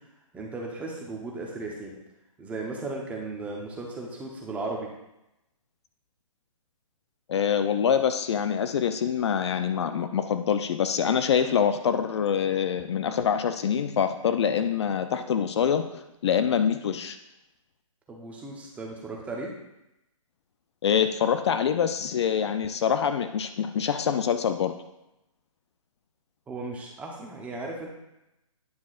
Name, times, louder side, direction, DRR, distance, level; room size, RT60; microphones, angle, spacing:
voice 1, 0.3-1.9 2.4-4.9 18.1-19.5 26.5-27.9, right 2 dB, 10° right, -1 dB, 0.8 m, -36 dB
voice 2, 7.3-17.2 20.8-24.7, left 8 dB, 55° left, 9 dB, 0.5 m, -25 dB
9.5 x 6.0 x 2.5 m, 0.91 s
hypercardioid pair, 150°, 17 cm